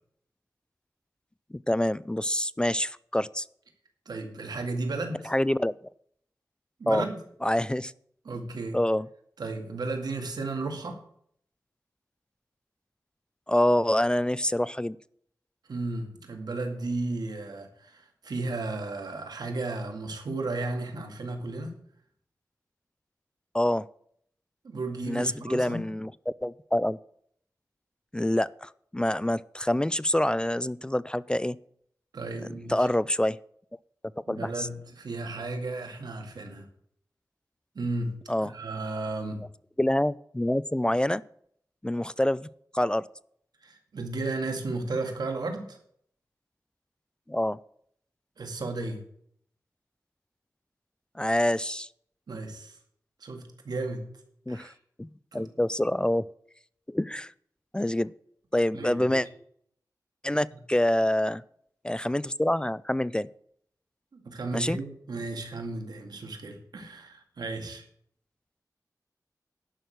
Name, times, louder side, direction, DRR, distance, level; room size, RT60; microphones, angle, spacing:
voice 1, 1.5-3.4 5.2-5.8 6.9-7.1 7.4-7.9 8.7-9.1 13.5-15.0 23.5-23.9 25.1-27.0 28.1-31.6 32.7-33.4 34.3-34.7 38.3-38.5 39.8-41.2 41.8-42.5 42.7-43.1 47.3-47.6 51.2-51.9 54.5-54.7 55.0-56.3 56.9-57.3 57.7-58.1 58.5-59.3 60.2-61.4 61.8-63.3 64.5-64.8, left 1 dB, 15° left, 20 dB, 0.3 m, -26 dB
voice 2, 4.1-5.3 6.8-7.2 8.3-8.8 9.4-11.0 15.7-21.7 24.6-25.8 32.1-32.9 34.3-36.7 37.8-38.1 38.4-39.4 43.6-45.8 48.4-49.0 52.3-52.8 53.2-54.0 54.5-54.7 55.3-55.5 58.7-59.2 64.1-67.8, right 3 dB, 85° right, 4 dB, 2.1 m, -34 dB
11.0 x 6.3 x 8.1 m, 0.66 s
wide cardioid pair, 60°, 7 cm